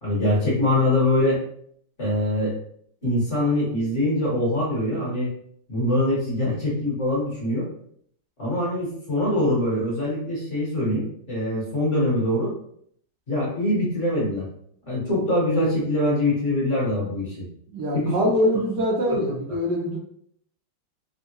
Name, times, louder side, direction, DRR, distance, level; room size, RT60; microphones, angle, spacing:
voice 1, 0.0-1.4 2.0-2.5 3.0-5.3 5.7-7.7 8.4-12.5 13.3-14.4 14.9-17.5 17.9-18.3 19.0-19.2, left 1 dB, 40° left, -6 dB, 1.3 m, -23 dB
voice 2, 17.7-20.0, equal, 70° right, -3 dB, 1.1 m, -24 dB
3.5 x 2.2 x 2.9 m, 0.65 s
omnidirectional pair, 2.1 m